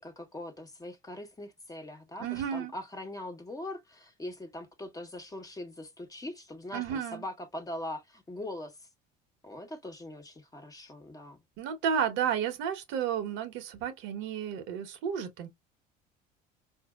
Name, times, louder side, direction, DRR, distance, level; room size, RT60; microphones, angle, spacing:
voice 1, 0.0-8.8 9.4-11.4, left 1 dB, 15° left, 1.2 m, -41 dB
voice 2, 2.2-2.7 6.7-7.2 11.6-15.5, right 8 dB, 70° right, 1.1 m, -32 dB
4.4 x 2.7 x 2.3 m
supercardioid pair, 85°, 21 cm